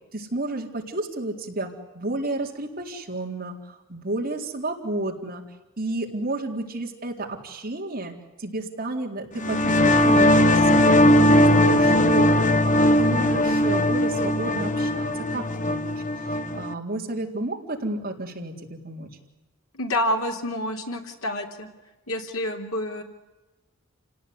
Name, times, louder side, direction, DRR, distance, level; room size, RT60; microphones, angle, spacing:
voice 1, 0.1-5.4 5.8-16.0 16.5-19.1, right 2 dB, 40° right, 0 dB, 4.0 m, -31 dB
sound 1, 9.4-16.7, left 1 dB, 35° left, 1.0 m, -19 dB
voice 2, 19.7-21.7 22.1-23.0, left 1 dB, 75° left, 3 dB, 3.5 m, -28 dB
29.0 x 18.0 x 9.7 m, 1.1 s
head